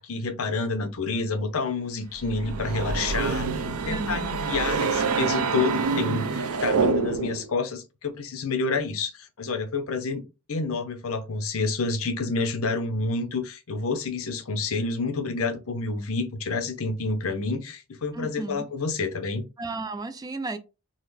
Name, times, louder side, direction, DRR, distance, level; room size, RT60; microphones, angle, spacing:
voice 1, 0.0-3.5 3.9-10.2 10.5-19.4, left 3 dB, 70° left, 0.7 m, -29 dB
sound 1, 2.2-7.5, right 4 dB, 80° right, 0.5 m, -26 dB
voice 2, 3.9-4.4 18.1-18.7 19.6-20.6, right 2 dB, 15° right, 0.3 m, -33 dB
3.8 x 2.0 x 3.2 m
head